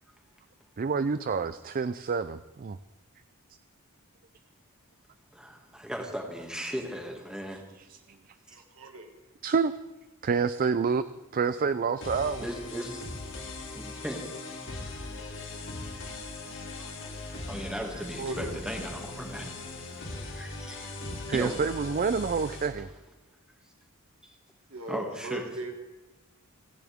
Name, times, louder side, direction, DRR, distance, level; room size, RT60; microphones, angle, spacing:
voice 1, 0.8-2.8 7.9-8.0 9.4-9.7 10.2-11.1 11.3-12.4 21.0-22.9, right 5 dB, 40° right, 13 dB, 0.4 m, -28 dB
voice 2, 5.3-7.6 12.4-13.0 13.7-14.3 16.4-17.2 17.5-21.6 24.2-24.3 24.9-25.4, equal, 5° right, 1 dB, 2.1 m, -38 dB
voice 3, 8.5-9.1 17.9-18.5 24.7-25.7, right 2 dB, 70° right, 3 dB, 2.1 m, -38 dB
sound 1, 12.0-22.7, left 2 dB, 60° left, 2.9 m, -39 dB
30.0 x 10.5 x 3.6 m, 1.1 s
head